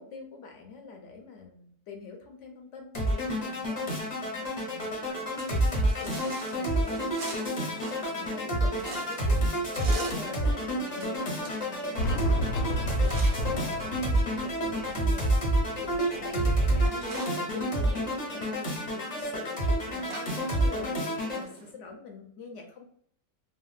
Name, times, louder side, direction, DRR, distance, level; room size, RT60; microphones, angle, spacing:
voice 1, 0.0-21.0 21.3-22.8, left 4 dB, 65° left, 2 dB, 0.8 m, -45 dB
sound 1, 2.9-21.4, right 1 dB, 40° left, 0.7 m, -28 dB
sound 2, 5.1-21.7, right 4 dB, 75° right, 1.0 m, -46 dB
Fireworks, 12.0-17.0, left 1 dB, 85° left, 1.1 m, -34 dB
3.6 x 2.0 x 2.3 m, 0.63 s
omnidirectional pair, 1.6 m